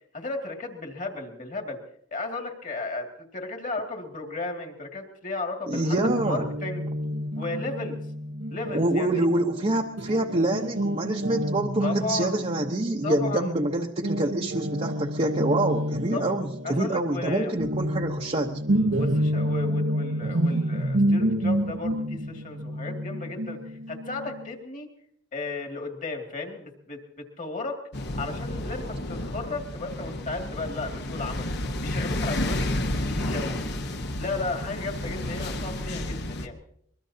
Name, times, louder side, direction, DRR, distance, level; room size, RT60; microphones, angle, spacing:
voice 1, 0.1-1.8 2.1-6.9 7.4-8.0 8.5-9.2 11.8-12.4 13.0-13.5 16.1-16.4 16.6-17.6 19.0-24.9 25.3-27.8 28.1-32.7 33.0-33.6 34.2-36.6, left 3 dB, 40° left, 3 dB, 2.2 m, -34 dB
voice 2, 5.7-6.4 8.7-18.6, right 1 dB, 30° right, 0 dB, 0.9 m, -26 dB
Guitar, 6.0-13.7 14.0-24.5, right 1 dB, 65° right, 0.9 m, -29 dB
sound 1, 27.9-36.5, left 1 dB, 55° left, 1.1 m, -31 dB
24.0 x 21.5 x 2.8 m, 0.69 s
head